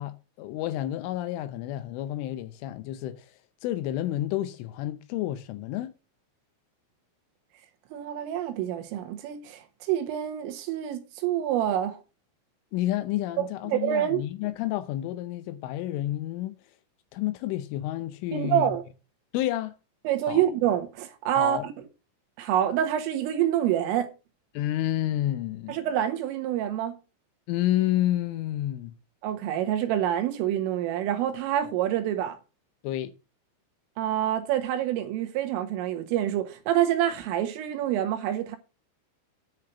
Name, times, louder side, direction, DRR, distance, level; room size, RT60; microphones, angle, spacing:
voice 1, 0.0-3.3 3.6-5.9 12.7-16.5 17.1-18.8 19.3-19.7 20.3-20.4 21.4-21.7 24.5-25.8 27.5-28.9 32.8-33.1, left 14 dB, 80° left, 3.1 m, -30 dB
voice 2, 7.9-12.0 13.4-14.2 18.3-18.8 20.1-21.7 22.4-24.1 25.7-27.0 29.2-32.4 34.0-38.6, right 11 dB, 75° right, 4.0 m, -27 dB
10.5 x 5.8 x 6.7 m
omnidirectional pair, 6.0 m